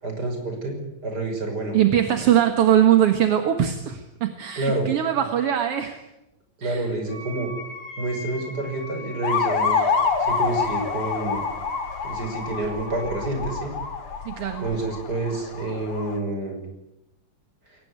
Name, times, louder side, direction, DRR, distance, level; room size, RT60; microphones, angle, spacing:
voice 1, 0.0-1.8 4.6-5.0 6.6-7.5 8.0-9.8 10.2-11.4 12.0-13.7 14.6-16.6, right 2 dB, 30° right, 4 dB, 6.2 m, -28 dB
voice 2, 1.7-6.0 6.6-6.9 14.3-14.7, right 10 dB, 55° right, 7 dB, 2.1 m, -21 dB
Wind instrument woodwind instrument, 7.1-13.4, left 2 dB, 40° left, 6.1 m, -41 dB
sound 1, 9.2-16.2, left 5 dB, 55° left, 2.9 m, -27 dB
22.0 x 19.5 x 9.7 m, 0.90 s
omnidirectional pair, 3.8 m